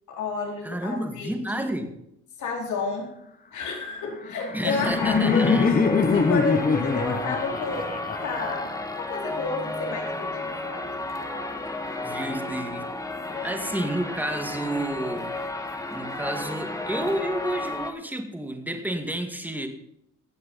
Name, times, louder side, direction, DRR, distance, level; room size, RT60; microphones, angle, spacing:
voice 1, 0.1-1.7 2.4-3.2 3.5-12.0 13.3-13.8, left 4 dB, 75° left, -1 dB, 4.3 m, -32 dB
voice 2, 0.6-1.9 4.5-5.7 12.0-12.8 13.4-15.3 15.9-19.7, right 1 dB, 5° right, 5 dB, 2.1 m, -30 dB
Laughter, 4.1-9.2, left 5 dB, 30° left, 1.2 m, -24 dB
sound 1, 4.8-17.9, left 2 dB, 10° left, 1.6 m, -33 dB
17.0 x 6.6 x 5.6 m, 0.77 s
cardioid pair, 90°, 30 cm